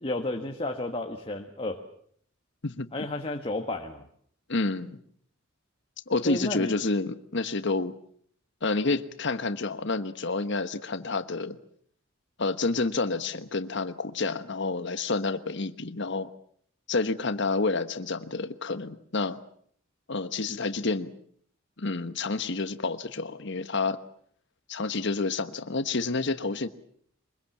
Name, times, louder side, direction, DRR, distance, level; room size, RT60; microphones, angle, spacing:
voice 1, 0.0-1.8 2.9-4.0 6.2-6.7, left 2 dB, 30° left, 3 dB, 1.5 m, -32 dB
voice 2, 4.5-5.0 6.1-8.0 8.6-11.6 12.4-16.3 16.9-19.4 20.1-21.1 21.8-24.0 24.7-26.7, left 3 dB, 60° left, 12 dB, 1.2 m, -29 dB
24.0 x 22.0 x 7.2 m, 0.63 s
head